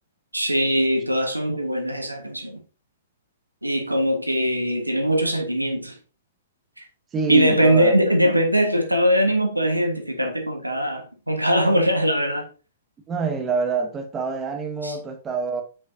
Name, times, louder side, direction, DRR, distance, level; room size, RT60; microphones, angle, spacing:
voice 1, 0.3-2.6 3.6-6.0 7.3-12.4 14.8-14.9, equal, 85° right, 1.4 m, -21 dB
voice 2, 7.1-7.9 13.1-15.6, right 4 dB, 15° right, 1.1 m, -26 dB
7.7 x 6.3 x 2.7 m
figure-of-eight pair, 110°, 0 cm